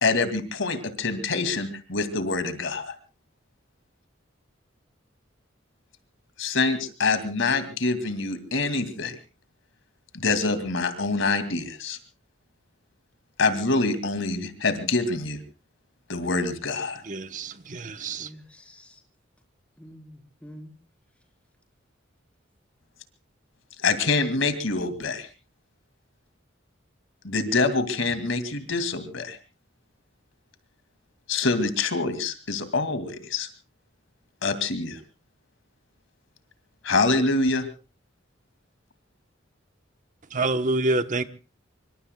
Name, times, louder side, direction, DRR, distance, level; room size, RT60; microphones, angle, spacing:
voice 1, 0.0-3.0 6.4-9.1 10.1-12.0 13.4-15.4 16.1-17.0 23.8-25.3 27.2-29.4 31.3-33.5 34.4-35.0 36.8-37.7, left 3 dB, 75° left, 2.4 m, -25 dB
voice 2, 17.0-18.3 40.3-41.2, right 2 dB, 40° right, 1.0 m, -27 dB
voice 3, 18.0-19.0 19.8-20.7, equal, 5° left, 4.0 m, -47 dB
26.0 x 24.5 x 2.3 m
head